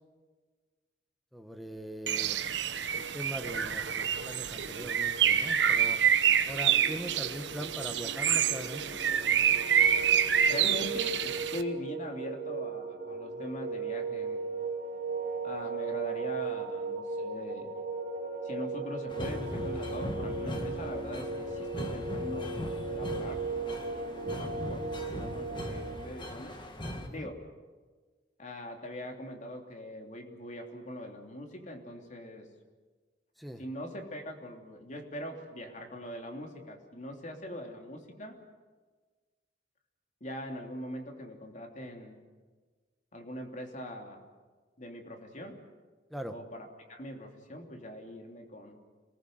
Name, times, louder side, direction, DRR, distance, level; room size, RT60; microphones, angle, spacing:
voice 1, 1.3-2.4 2.9-6.0 6.4-8.8 10.6-10.7 13.3-13.4 27.0-27.3 33.4-33.6 46.1-46.4, equal, ahead, 8 dB, 1.3 m, -41 dB
Bird, 2.1-11.6, right 8 dB, 75° right, 1.2 m, -27 dB
sound 1, 6.6-26.1, right 3 dB, 50° right, 2.2 m, -37 dB
voice 2, 10.4-14.4 15.4-17.7 18.4-26.6 27.1-27.4 28.4-32.5 33.6-38.4 40.2-42.2 43.1-44.2 44.8-45.6 46.3-48.8, equal, 45° left, 3 dB, 3.2 m, -42 dB
sound 2, 19.1-27.1, equal, 25° left, 2.2 m, -40 dB
27.0 x 20.0 x 7.9 m, 1.4 s
head